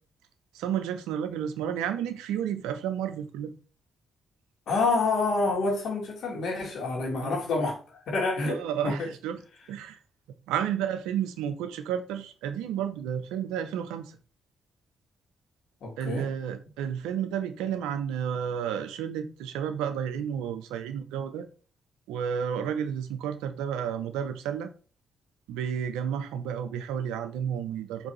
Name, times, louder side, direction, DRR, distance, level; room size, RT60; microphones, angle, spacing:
voice 1, 0.5-3.5 7.1-7.3 8.5-9.4 9.7-10.0 10.5-14.1 16.0-21.5 22.1-24.7 25.5-28.1, right 8 dB, 80° right, 0.4 m, -31 dB
voice 2, 4.7-8.6 8.8-9.1 15.8-16.3, left 3 dB, 70° left, 1.3 m, -27 dB
4.5 x 2.6 x 3.0 m
hypercardioid pair, 40°, 0 cm